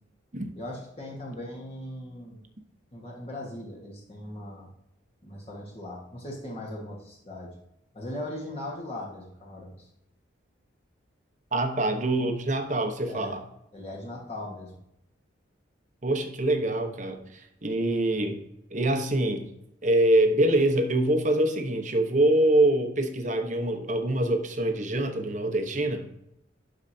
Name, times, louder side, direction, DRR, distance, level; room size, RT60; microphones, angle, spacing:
voice 1, 0.6-2.4 2.9-4.7 5.2-7.5 7.9-9.9 13.1-13.3 13.7-14.7, left 1 dB, 30° left, 1.4 m, -39 dB
voice 2, 11.5-13.4 16.0-18.4 18.7-19.5 19.8-26.1, right 1 dB, 40° right, 0.9 m, -25 dB
12.0 x 4.8 x 2.7 m
head